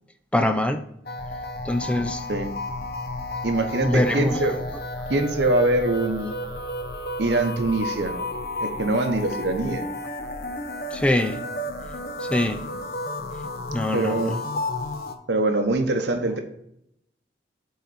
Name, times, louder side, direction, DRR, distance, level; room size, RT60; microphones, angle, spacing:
voice 1, 0.3-0.9 1.6-2.2 3.8-4.6 10.9-11.4 12.2-12.6 13.7-14.7, left 1 dB, 5° left, 8 dB, 0.4 m, -24 dB
sound 1, 1.0-15.1, left 1 dB, 60° left, 0.8 m, -32 dB
voice 2, 3.4-4.5 5.1-6.3 7.2-8.1 8.6-9.8 13.9-14.4 15.3-16.4, right 2 dB, 80° right, 6 dB, 1.0 m, -23 dB
8.1 x 4.0 x 4.2 m, 0.77 s
head